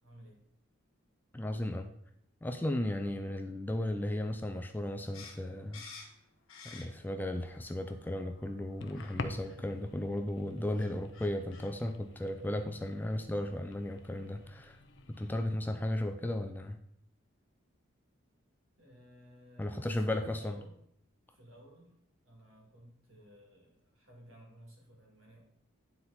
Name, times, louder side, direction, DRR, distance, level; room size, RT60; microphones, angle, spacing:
voice 1, 0.0-0.4 18.8-20.8 21.3-21.9 22.2-25.4, equal, 70° right, -1 dB, 2.4 m, -56 dB
voice 2, 1.3-1.9 2.4-5.8 6.6-14.8 15.2-16.8 19.6-20.6, left 1 dB, 10° left, 7 dB, 0.3 m, -35 dB
sound 1, 5.1-7.2 7.6-8.3 8.9-9.1 9.4-9.6 10.4-10.5 10.7-11.7, left 5 dB, 75° left, 1.6 m, -51 dB
sound 2, 7.3-15.5, left 3 dB, 60° left, 0.6 m, -48 dB
9.4 x 4.1 x 4.1 m, 0.70 s
head